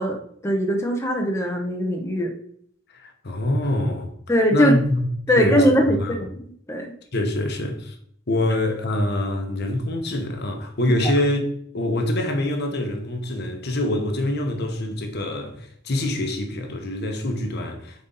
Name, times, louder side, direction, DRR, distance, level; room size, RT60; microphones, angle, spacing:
voice 1, 0.0-2.3 4.3-4.7 5.3-6.9, equal, 15° left, 0.8 m, -21 dB
voice 2, 2.9-4.1 4.5-5.1 5.4-5.7 6.0-6.2 7.1-7.9 8.3-11.4 11.7-18.1, left 1 dB, 55° left, 1.0 m, -25 dB
7.7 x 4.2 x 3.9 m
head